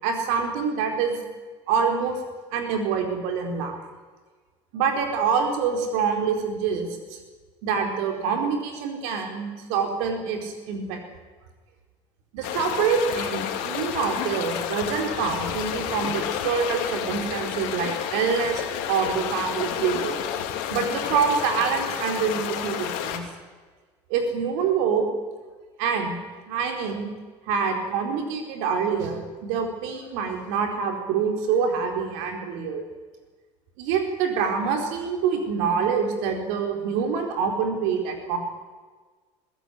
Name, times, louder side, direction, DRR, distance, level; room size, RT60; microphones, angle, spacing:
voice 1, 0.0-1.1 1.7-2.2 2.5-3.8 4.7-7.2 7.6-11.0 12.3-20.4 20.7-23.2 24.1-25.1 25.8-26.2 26.5-27.1 27.5-32.8 33.8-38.4, right 6 dB, 70° right, 4 dB, 4.5 m, -26 dB
sound 1, 12.4-23.2, left 9 dB, 65° left, 2.8 m, -30 dB
21.5 x 15.0 x 9.5 m, 1.4 s
hypercardioid pair, 70°, 15 cm